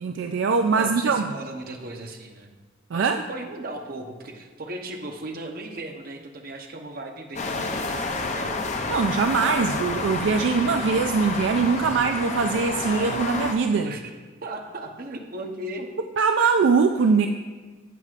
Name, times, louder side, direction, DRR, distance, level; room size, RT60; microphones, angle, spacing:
voice 1, 0.0-1.3 2.9-3.2 8.9-13.9 16.2-17.3, right 5 dB, 70° right, 6 dB, 0.4 m, -22 dB
voice 2, 0.7-2.5 2.9-8.8 11.8-12.0 13.8-14.1 14.4-15.9, right 2 dB, 50° right, 3 dB, 0.9 m, -37 dB
sound 1, 7.4-13.5, left 3 dB, 35° left, 0.6 m, -29 dB
12.5 x 8.0 x 2.5 m, 1.3 s
head